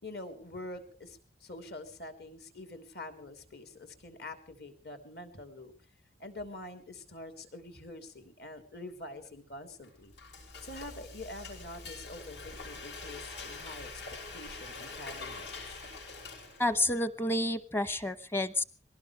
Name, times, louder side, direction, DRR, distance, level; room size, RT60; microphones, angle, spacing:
voice 1, 0.0-5.7 6.2-10.1 10.6-13.9 14.3-15.8, left 2 dB, 55° left, 7 dB, 3.6 m, -46 dB
Frying (food), 9.8-16.9, left 3 dB, 70° left, 7.1 m, -44 dB
voice 2, 16.6-18.6, left 1 dB, 15° left, 14 dB, 0.9 m, -29 dB
22.5 x 19.0 x 3.4 m, 0.39 s
head